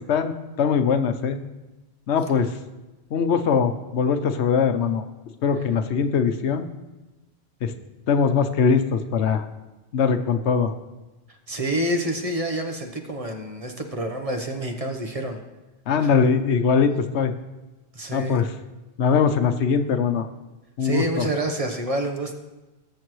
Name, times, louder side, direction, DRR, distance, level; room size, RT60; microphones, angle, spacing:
voice 1, 0.6-1.4 2.1-2.5 3.1-5.0 5.4-6.7 7.6-7.7 8.1-9.5 9.9-10.7 15.9-17.3 18.1-18.5 19.0-20.2 20.8-21.2, left 6 dB, 85° left, 9 dB, 1.0 m, -21 dB
voice 2, 11.3-15.4 16.0-16.1 17.9-18.4 20.8-22.3, right 1 dB, 35° right, 4 dB, 1.0 m, -28 dB
19.5 x 6.9 x 3.1 m, 1.1 s
omnidirectional pair, 1.1 m